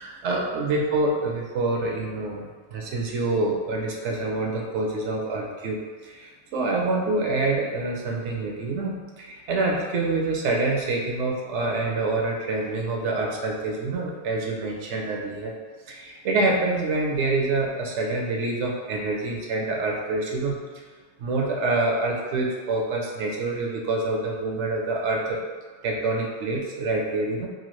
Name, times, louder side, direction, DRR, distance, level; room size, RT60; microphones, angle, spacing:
voice 1, 0.0-2.4 2.7-15.5 15.9-20.6 21.2-25.4 25.8-27.5, right 2 dB, 90° right, 0 dB, 0.9 m, -26 dB
3.0 x 2.4 x 2.9 m, 1.5 s
omnidirectional pair, 1.2 m